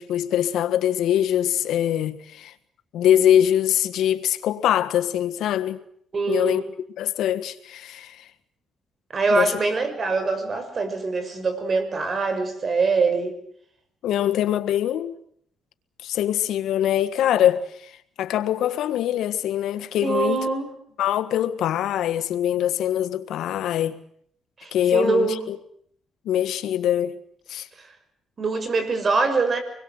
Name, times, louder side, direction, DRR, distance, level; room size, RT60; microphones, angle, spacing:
voice 1, 0.0-2.5 2.9-5.8 6.3-6.6 7.0-8.3 9.3-9.5 14.0-15.1 16.0-17.9 18.2-20.4 21.0-24.0 24.7-25.6 26.2-27.2 27.5-27.7, left 11 dB, 80° left, 1.5 m, -23 dB
voice 2, 6.1-6.6 9.1-13.3 20.0-20.7 24.6-25.4 28.4-29.6, right 4 dB, 40° right, 6.1 m, -23 dB
26.0 x 21.5 x 8.0 m
cardioid pair, 90°, 0 cm